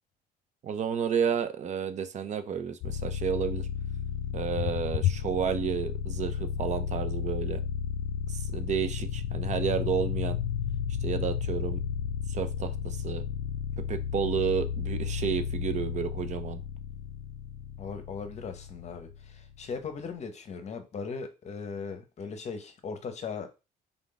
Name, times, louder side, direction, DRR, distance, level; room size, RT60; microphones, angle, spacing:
voice 1, 0.6-3.7 4.3-7.6 8.3-10.4 11.0-11.8 12.3-13.2 13.9-16.6, right 7 dB, 45° right, 10 dB, 0.5 m, -31 dB
sound 1, 2.8-19.5, left 8 dB, 80° left, 0.4 m, -33 dB
voice 2, 17.8-23.5, left 5 dB, 40° left, 8 dB, 0.7 m, -38 dB
3.5 x 2.5 x 3.8 m, 0.29 s
cardioid pair, 110°, 17 cm